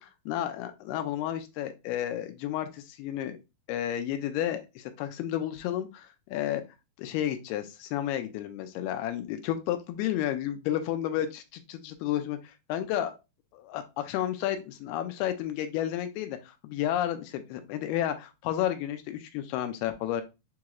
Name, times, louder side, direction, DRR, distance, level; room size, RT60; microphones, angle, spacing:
voice 1, 0.0-3.4 3.7-6.6 7.0-13.2 13.5-20.2, left 11 dB, 85° left, 8 dB, 2.5 m, -32 dB
7.3 x 3.0 x 2.3 m, 0.26 s
omnidirectional pair, 4.5 m